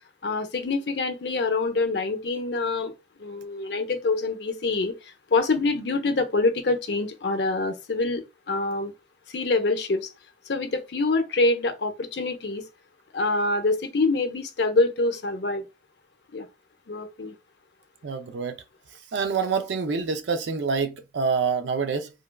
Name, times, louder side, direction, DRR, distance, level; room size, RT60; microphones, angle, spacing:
voice 1, 0.2-2.9 3.2-8.2 8.5-8.9 9.3-10.1 10.5-12.6 13.1-15.7 16.3-16.5 16.9-17.4, left 3 dB, 70° left, 0.6 m, -25 dB
voice 2, 18.0-18.6 19.1-22.1, right 5 dB, 80° right, 0.4 m, -26 dB
3.3 x 2.2 x 2.2 m
head